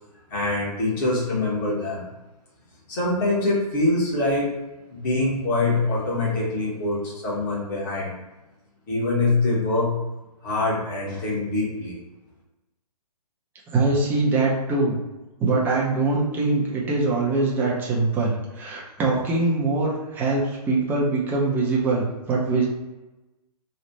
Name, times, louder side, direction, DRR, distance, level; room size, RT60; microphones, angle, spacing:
voice 1, 0.3-2.0 2.9-4.5 4.9-8.1 8.9-10.0 10.4-12.0, left 2 dB, 30° left, -6 dB, 1.4 m, -24 dB
voice 2, 13.7-15.0 15.4-22.7, right 3 dB, 10° right, -4 dB, 0.7 m, -23 dB
3.2 x 2.5 x 4.0 m, 1.1 s
hypercardioid pair, 140°, 21 cm